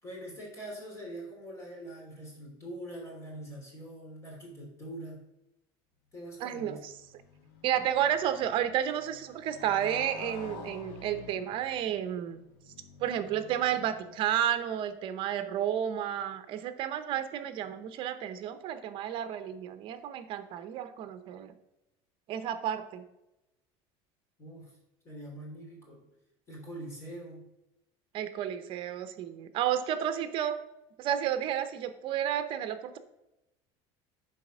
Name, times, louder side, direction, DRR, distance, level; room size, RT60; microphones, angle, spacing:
voice 1, 0.0-5.2 6.1-6.8 24.4-24.7 25.0-26.1 26.5-27.5, right 1 dB, 20° left, -1 dB, 3.0 m, -43 dB
Motorcycle, 6.4-14.5, left 5 dB, 80° left, 1.3 m, -49 dB
voice 2, 6.4-6.9 7.6-12.4 13.0-21.5 22.3-23.0 28.1-30.6 31.0-33.0, right 10 dB, 45° right, 10 dB, 0.8 m, -31 dB
9.2 x 4.2 x 6.2 m, 0.90 s
cardioid pair, 160°, 12 cm